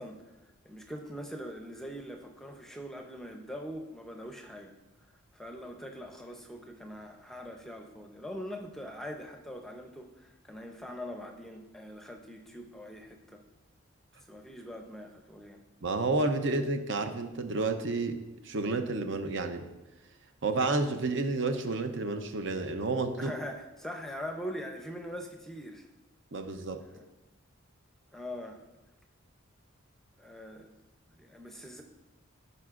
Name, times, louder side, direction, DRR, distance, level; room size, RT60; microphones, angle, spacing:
voice 1, 0.0-4.7 5.3-13.4 14.3-15.6 23.2-25.9 26.9-27.0 28.1-28.6 30.2-30.7 31.2-31.8, equal, ahead, 3 dB, 0.6 m, -42 dB
voice 2, 15.8-18.2 18.4-19.6 20.4-23.3 26.3-26.8, right 3 dB, 60° right, 6 dB, 0.7 m, -30 dB
15.0 x 5.1 x 2.5 m, 1.0 s
head